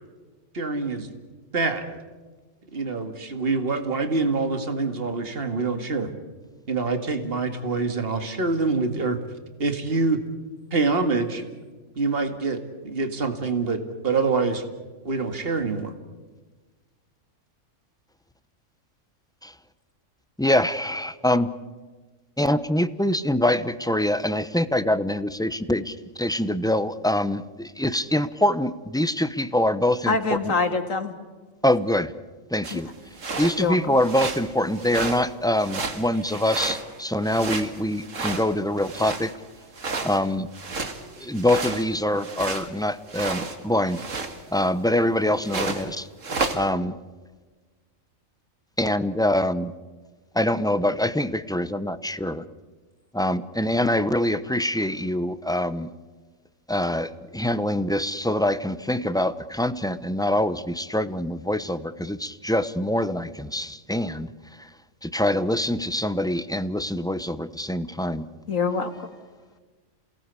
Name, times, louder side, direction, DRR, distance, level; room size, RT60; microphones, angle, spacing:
voice 1, 0.5-1.2 1.5-2.0 2.7-6.1 6.7-9.2 9.6-10.2 10.7-11.4 12.0-14.6 15.0-15.9, right 3 dB, 45° right, 7 dB, 2.3 m, -25 dB
voice 2, 20.4-21.5 22.4-30.2 30.4-30.5 31.6-32.1 32.5-32.9 33.4-39.3 40.0-40.5 41.2-44.0 44.5-46.1 46.5-46.9 48.8-49.7 50.3-52.4 53.1-55.9 56.7-64.3 64.6-64.7 65.0-68.3, left 1 dB, 5° left, 12 dB, 0.7 m, -24 dB
voice 3, 30.1-31.1 32.7-32.8 33.6-34.0 68.5-69.1, left 4 dB, 80° left, 7 dB, 2.4 m, -25 dB
sound 1, 32.6-32.8 33.1-33.6 34.0-34.5 34.7-35.3 35.6-37.0 37.2-39.4 39.7-42.7 43.1-43.6 43.9-44.7 45.4-45.9 46.2-46.6, right 4 dB, 75° right, 2.3 m, -31 dB
28.0 x 18.5 x 8.4 m, 1.3 s
omnidirectional pair, 1.3 m